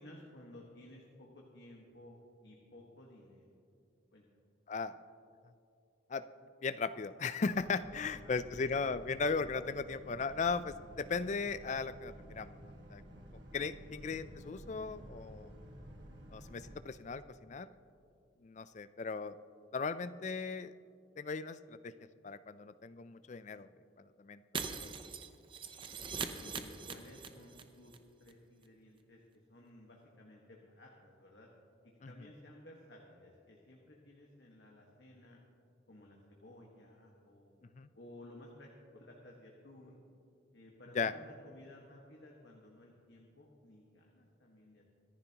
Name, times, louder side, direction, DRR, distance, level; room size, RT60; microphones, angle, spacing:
voice 1, 0.0-3.5 4.1-4.2 7.9-8.5 13.8-13.9 26.3-29.2 29.5-31.5 31.8-35.4 35.9-37.6 37.9-40.0 40.5-44.8, left 1 dB, 60° left, -2 dB, 1.5 m, -56 dB
voice 2, 6.6-12.6 12.9-13.0 13.5-15.5 16.3-17.7 18.4-19.4 19.7-20.7 21.2-21.9 22.2-23.7 24.2-24.9 32.0-32.1 37.7-37.9 40.9-41.1, left 4 dB, 35° left, 13 dB, 0.4 m, -37 dB
Boat Water vehicle, 7.4-16.8, equal, 70° right, 1.6 m, -53 dB
Shatter, 24.5-27.6 27.9-28.0 28.3-28.4, right 5 dB, 25° right, 0.7 m, -41 dB
25.0 x 11.0 x 2.9 m, 2.6 s
head